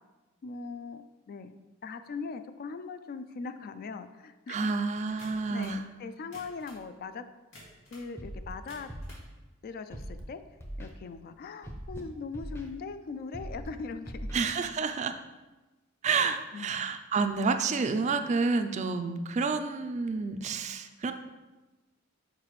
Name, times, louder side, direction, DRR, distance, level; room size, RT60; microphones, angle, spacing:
voice 1, 0.4-1.5 1.8-4.7 5.1-5.2 5.5-7.2 7.9-8.9 9.6-10.4 10.8-14.3 16.1-16.8, left 4 dB, 45° left, 11 dB, 0.3 m, -40 dB
voice 2, 4.5-5.8 14.3-15.1 16.0-21.1, right 4 dB, 35° right, 8 dB, 0.3 m, -29 dB
sound 1, 5.2-5.8 6.2-6.9 7.5-8.1 8.5-9.3, left 1 dB, 80° left, 2.0 m, -52 dB
Scratching (performance technique), 8.2-8.5 8.9-9.2 9.9-10.2 10.6-10.9 11.6-12.0 12.3-12.7 13.3-13.7 14.0-14.3, equal, 10° left, 0.6 m, -40 dB
6.6 x 4.7 x 3.1 m, 1.1 s
head